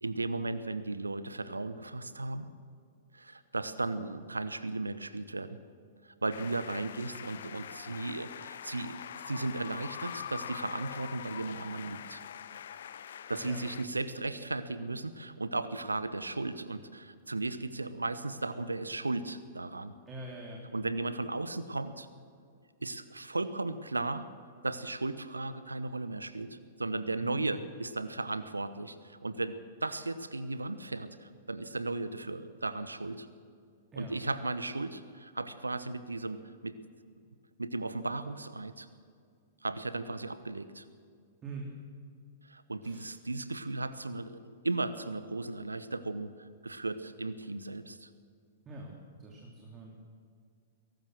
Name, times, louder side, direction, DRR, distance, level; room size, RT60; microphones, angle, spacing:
voice 1, 0.0-2.5 3.1-5.6 6.2-9.0 9.2-12.2 13.3-19.9 20.7-22.1 22.8-24.3 24.6-33.3 34.0-36.8 37.6-38.9 39.6-40.8 42.4-48.1, right 2 dB, 80° right, 14 dB, 1.0 m, -36 dB
sound 1, 6.3-13.8, left 9 dB, 60° left, 0.7 m, -44 dB
voice 2, 20.1-20.6 27.2-27.5 33.9-34.2 41.4-41.7 42.8-43.1 48.6-50.0, right 2 dB, 20° right, -1 dB, 3.1 m, -44 dB
22.5 x 18.5 x 6.4 m, 2.2 s
figure-of-eight pair, 105°, 0 cm